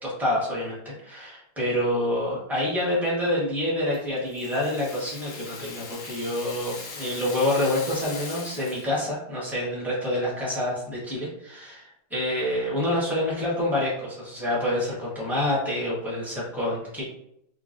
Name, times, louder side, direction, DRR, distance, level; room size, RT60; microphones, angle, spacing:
voice 1, 0.0-17.0, left 1 dB, ahead, -7 dB, 0.6 m, -27 dB
Rattle (instrument), 3.9-9.0, left 4 dB, 70° left, 1.3 m, -40 dB
3.7 x 2.3 x 2.6 m, 0.77 s
omnidirectional pair, 2.2 m